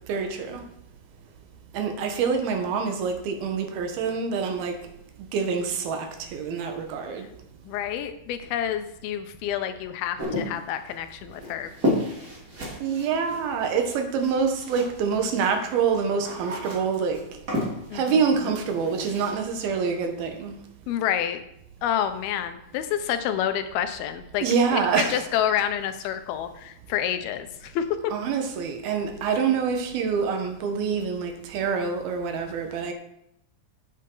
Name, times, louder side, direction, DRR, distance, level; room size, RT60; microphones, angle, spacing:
voice 1, 0.1-0.6 1.7-4.8 5.3-7.3 12.8-17.2 17.9-20.6 24.4-25.3 28.1-32.9, right 6 dB, 80° right, 3.2 m, -26 dB
voice 2, 7.6-11.7 17.9-18.5 20.9-21.4 21.8-24.4 24.7-28.1, left 10 dB, 90° left, 2.7 m, -28 dB
sound 1, 10.2-15.1 15.4-19.4, left 1 dB, 30° right, 3.0 m, -32 dB
10.5 x 8.6 x 3.9 m
omnidirectional pair, 4.3 m